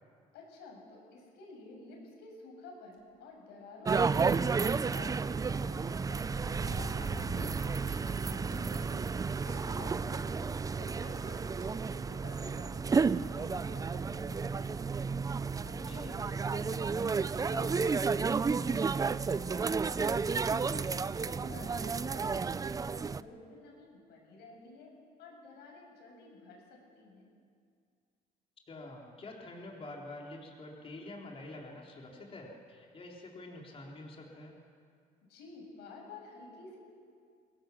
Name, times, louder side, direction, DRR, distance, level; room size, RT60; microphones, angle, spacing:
voice 1, 0.3-4.4 4.9-7.6 8.1-9.0 9.4-10.4 10.7-14.9 15.6-17.1 17.4-19.7 19.9-22.5 22.8-24.9 25.2-27.3 35.3-36.8, left 3 dB, 85° left, 0 dB, 7.4 m, -51 dB
sound 1, 3.9-23.2, right 5 dB, 20° right, 0.5 m, -32 dB
sound 2, 6.3-8.1 8.5-8.6 9.0-9.1 9.5-10.6 11.6-11.7 13.1-13.2 13.8-13.9 14.6-14.8 16.2-16.3 16.5-16.6 18.3-18.6 19.3-19.4, right 4 dB, 60° right, 5.1 m, -43 dB
voice 2, 15.9-16.2 28.7-34.6, left 2 dB, 35° left, -1 dB, 4.0 m, -47 dB
23.0 x 18.5 x 7.6 m, 2.2 s
cardioid pair, 110°, 17 cm